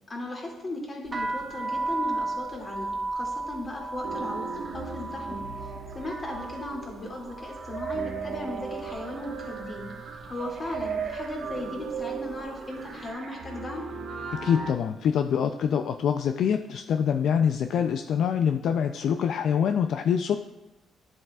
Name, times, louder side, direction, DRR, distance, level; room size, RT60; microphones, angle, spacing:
voice 1, 0.1-5.7 5.9-9.9 10.3-13.8, left 1 dB, 35° left, -1 dB, 2.4 m, -37 dB
sound 1, 1.1-9.0 9.3-9.9 10.5-10.8 11.1-12.6, right 2 dB, 25° right, 1.3 m, -35 dB
sound 2, 4.0-14.7, right 5 dB, 65° right, 1.2 m, -37 dB
voice 2, 14.3-20.4, left 7 dB, 70° left, 7 dB, 0.3 m, -25 dB
10.5 x 7.5 x 2.3 m, 1.0 s
cardioid pair, 90°, 0 cm